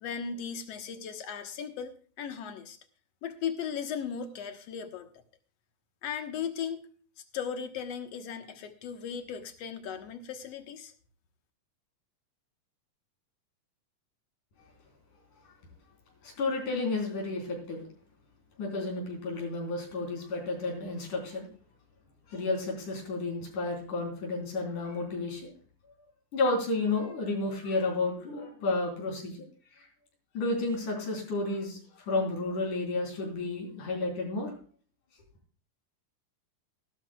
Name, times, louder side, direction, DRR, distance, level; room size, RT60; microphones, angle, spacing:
voice 1, 0.0-2.8 3.2-5.1 6.0-6.9 7.3-10.9, left 7 dB, 60° left, 7 dB, 2.2 m, -37 dB
voice 2, 16.2-17.8 18.6-21.5 22.3-25.5 26.3-29.4 29.8-29.9 30.4-31.8 32.1-34.5, left 3 dB, 80° left, 0 dB, 5.4 m, -31 dB
17.5 x 12.0 x 2.3 m, 0.41 s
omnidirectional pair, 3.5 m